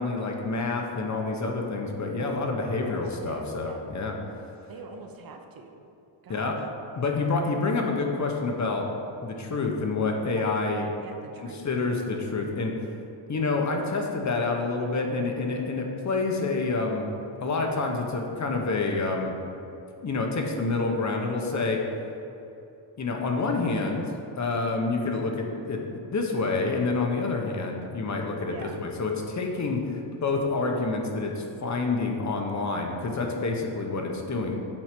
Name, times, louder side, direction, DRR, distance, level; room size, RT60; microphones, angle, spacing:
voice 1, 0.0-4.1 6.3-6.5 7.0-8.9 9.2-10.9 11.6-12.8 13.3-17.1 17.4-19.4 20.0-21.8 23.0-25.8 26.1-34.6, left 3 dB, 40° left, 2 dB, 1.0 m, -28 dB
voice 2, 3.3-3.9 4.7-5.9 6.2-6.6 10.3-11.7 28.5-28.9, right 4 dB, 50° right, 4 dB, 0.7 m, -44 dB
7.6 x 4.8 x 5.9 m, 2.7 s
wide cardioid pair, 150°, 46 cm